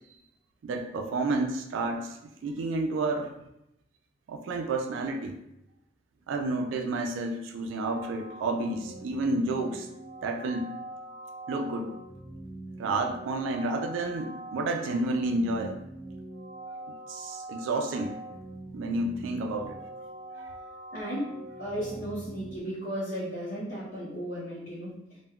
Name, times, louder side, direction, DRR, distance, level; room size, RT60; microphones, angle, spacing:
voice 1, 0.6-2.2 2.4-3.3 4.3-5.4 6.3-9.9 10.2-10.7 11.5-11.9 12.8-15.8 17.1-18.2 18.7-19.8 20.4-20.5, right 2 dB, 90° right, 5 dB, 0.3 m, -30 dB
sound 1, 7.8-22.6, right 1 dB, 10° right, 0.6 m, -43 dB
voice 2, 20.9-21.3 21.6-25.0, equal, 50° left, -10 dB, 0.6 m, -35 dB
2.2 x 2.1 x 3.5 m, 0.83 s
head